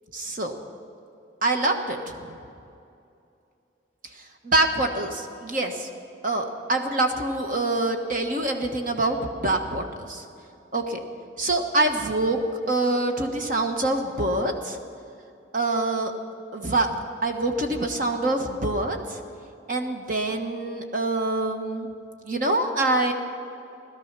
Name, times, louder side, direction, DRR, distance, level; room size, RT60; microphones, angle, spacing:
voice 1, 0.1-0.5 1.4-2.4 4.4-5.9 6.2-9.2 9.4-10.2 10.7-11.0 11.4-12.4 12.7-14.8 15.5-16.1 16.5-16.9 17.2-19.2 19.7-21.9 22.2-23.1, right 2 dB, 45° right, 4 dB, 1.2 m, -25 dB
17.5 x 12.5 x 6.0 m, 2.6 s
head